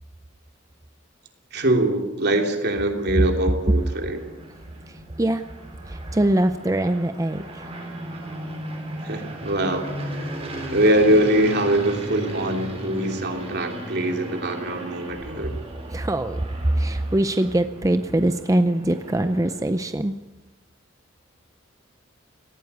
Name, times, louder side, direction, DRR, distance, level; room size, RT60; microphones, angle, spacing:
voice 1, 1.5-4.2 9.0-10.3 10.7-15.5, right 1 dB, 60° right, 3 dB, 3.0 m, -23 dB
sound 1, 2.9-19.9, right 1 dB, 30° right, 3.7 m, -36 dB
voice 2, 4.9-5.4 5.9-7.7 15.9-20.1, right 1 dB, 15° right, 9 dB, 0.6 m, -23 dB
19.0 x 14.5 x 9.5 m, 1.1 s
head